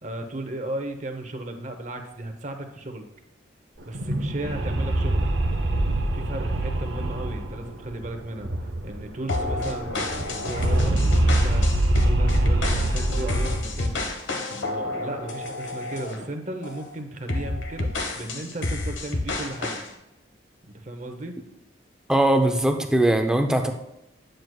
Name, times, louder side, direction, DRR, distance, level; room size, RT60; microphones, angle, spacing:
voice 1, 0.0-3.1 3.9-5.3 6.1-8.5 8.8-11.6 11.9-14.0 14.5-17.9 18.2-19.8 20.6-21.4, right 1 dB, 40° right, 5 dB, 0.8 m, -35 dB
sound 1, 3.8-9.1 9.4-9.5 9.7-14.1, right 1 dB, 80° right, 0.8 m, -24 dB
sound 2, 9.3-16.2 16.6-16.9 17.3-19.9, left 2 dB, 85° left, 1.0 m, -30 dB
voice 2, 22.1-23.7, right 1 dB, 5° right, 5 dB, 0.6 m, -20 dB
9.3 x 7.7 x 2.3 m, 0.87 s
head